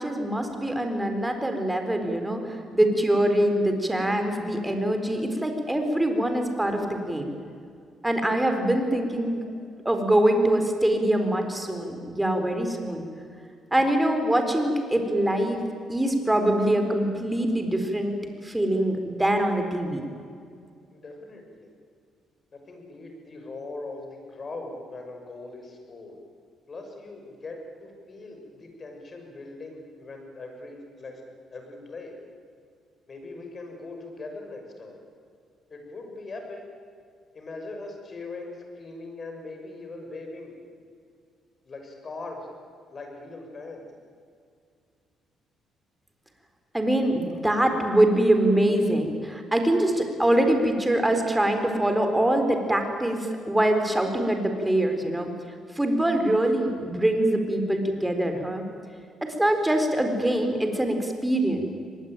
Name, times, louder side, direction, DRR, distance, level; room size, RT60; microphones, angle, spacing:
voice 1, 0.0-7.3 8.0-9.4 9.8-13.1 13.7-15.6 15.9-18.1 18.4-20.0 46.7-55.3 55.8-58.6 59.2-61.7, right 1 dB, 10° right, 5 dB, 4.2 m, -24 dB
voice 2, 20.9-21.7 22.5-26.2 26.7-31.2 31.5-32.1 33.1-35.0 35.7-36.6 37.3-40.6 41.6-42.5 42.9-43.9, left 3 dB, 40° left, 3 dB, 6.3 m, -40 dB
24.5 x 19.5 x 9.2 m, 2.3 s
cardioid pair, 90°, 0 cm